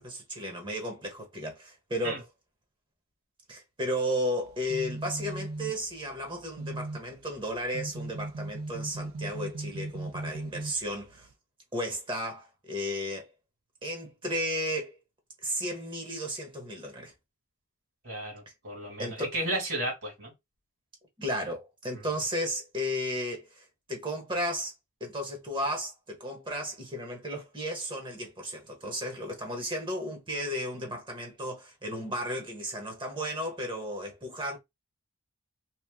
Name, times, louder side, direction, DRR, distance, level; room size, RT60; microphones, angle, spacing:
voice 1, 0.0-2.2 3.5-11.3 11.7-13.3 13.8-15.0 15.4-17.1 19.0-19.3 21.2-24.7 25.0-34.6, equal, 25° right, 1.0 m, -34 dB
sound 1, 4.4-11.3, right 2 dB, 80° right, 0.4 m, -39 dB
voice 2, 18.0-20.3, right 1 dB, 55° right, 1.8 m, -33 dB
3.0 x 2.3 x 3.4 m
head